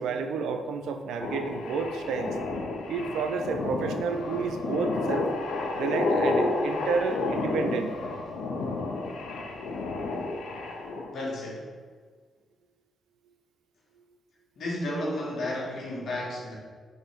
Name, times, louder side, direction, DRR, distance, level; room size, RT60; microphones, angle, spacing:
voice 1, 0.0-2.4 2.9-5.3 5.7-8.0, right 5 dB, 85° right, 7 dB, 0.3 m, -30 dB
sound 1, 1.2-11.1, left 3 dB, 80° left, 0.5 m, -31 dB
voice 2, 11.1-11.7 14.6-16.6, left 1 dB, 65° left, -4 dB, 1.3 m, -32 dB
3.3 x 2.6 x 4.4 m, 1.6 s
cardioid pair, 70°, 0 cm